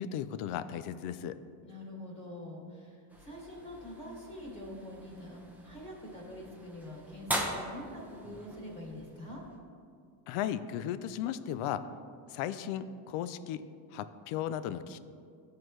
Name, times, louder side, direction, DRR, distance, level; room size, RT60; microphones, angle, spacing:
voice 1, 0.0-1.4 10.3-11.8 12.3-13.6 13.9-15.0, left 10 dB, 80° left, 13 dB, 0.6 m, -35 dB
voice 2, 1.6-9.4, left 1 dB, 25° left, -3 dB, 2.0 m, -45 dB
sound 1, 3.1-9.6, right 1 dB, 5° right, 0.7 m, -41 dB
13.5 x 4.7 x 3.1 m, 2.3 s
cardioid pair, 140°, 49 cm